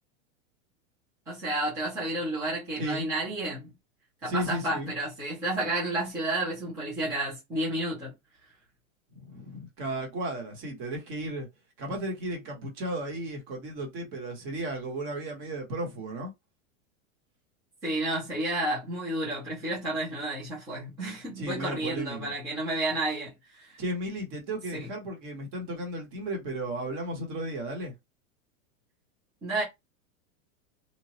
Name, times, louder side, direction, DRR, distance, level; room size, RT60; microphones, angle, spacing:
voice 1, 1.3-3.7 4.2-8.1 17.8-23.8 24.7-24.9 29.4-29.6, right 1 dB, 10° right, 0.3 m, -31 dB
voice 2, 2.8-3.1 4.3-4.9 9.1-11.5 11.8-16.3 21.4-22.3 23.8-27.9, right 1 dB, 30° right, 1.0 m, -34 dB
3.0 x 2.2 x 2.8 m
supercardioid pair, 165°, 41 cm